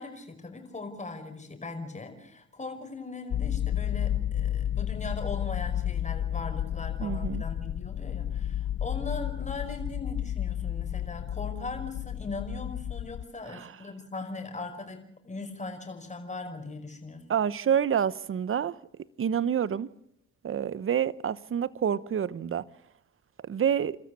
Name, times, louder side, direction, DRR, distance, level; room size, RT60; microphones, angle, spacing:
voice 1, 0.0-17.3, left 3 dB, 25° left, 5.3 m, -39 dB
sound 1, 3.3-13.2, left 11 dB, 55° left, 1.0 m, -31 dB
voice 2, 7.0-7.4 13.4-13.7 17.3-19.9 20.4-22.6 23.4-24.0, right 8 dB, 45° right, 1.0 m, -28 dB
29.0 x 13.5 x 8.5 m
cardioid pair, 90°, 30 cm